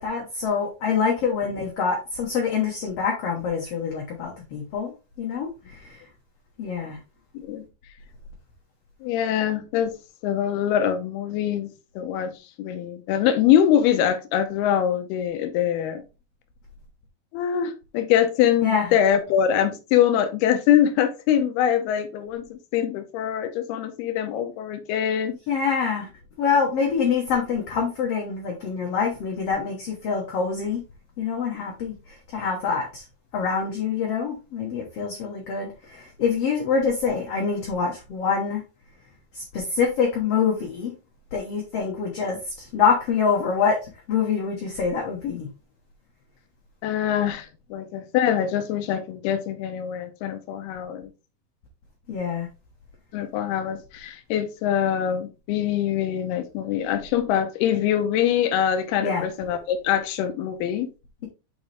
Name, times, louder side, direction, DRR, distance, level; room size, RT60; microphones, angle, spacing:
voice 1, 0.0-4.9 5.2-6.0 6.6-7.0 18.6-18.9 25.5-26.1 26.4-30.8 31.2-31.9 32.3-33.0 33.3-38.6 39.3-40.9 41.3-43.8 44.1-45.5 52.1-52.5 59.0-59.2, left 6 dB, 60° left, 0 dB, 1.6 m, -25 dB
voice 2, 7.3-7.6 9.0-9.9 10.2-11.7 12.0-12.3 12.6-16.0 17.3-25.4 31.5-31.7 46.8-51.1 53.1-60.9, left 10 dB, 90° left, 8 dB, 2.8 m, -23 dB
7.0 x 5.3 x 3.4 m, 0.29 s
omnidirectional pair, 4.5 m